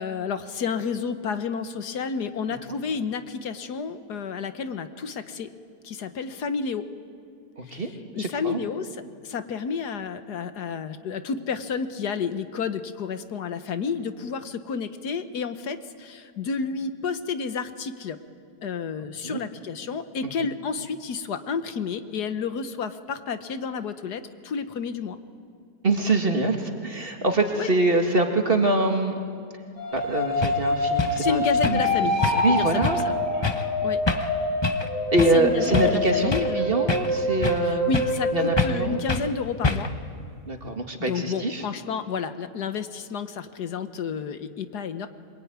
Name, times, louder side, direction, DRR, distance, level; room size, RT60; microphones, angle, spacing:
voice 1, 0.0-5.5 5.8-6.9 7.6-7.8 8.1-18.2 18.6-25.2 27.6-27.7 31.2-33.0 33.8-34.0 35.3-36.8 37.6-39.9 41.0-45.1, left 5 dB, 70° left, 10 dB, 1.6 m, -31 dB
voice 2, 7.6-7.9 8.2-8.6 19.2-19.4 25.8-29.1 29.9-32.1 32.4-33.0 35.1-37.9 38.3-39.0 40.5-41.6, right 2 dB, 35° right, 4 dB, 2.1 m, -24 dB
sound 1, 29.8-39.7, left 1 dB, 50° left, 8.6 m, -26 dB
sound 2, 30.0-30.1 30.4-30.6 31.0-31.2 31.6-31.9 32.2-32.6 32.8-33.1 33.4-33.7 34.1-34.3 34.6-34.9 35.2-35.4 35.7-36.6 36.9-37.7 37.9-38.2 38.6-38.8 39.1-39.3 39.6-40.0, left 3 dB, 25° left, 0.7 m, -26 dB
23.5 x 22.5 x 9.5 m, 2.3 s
omnidirectional pair, 1.8 m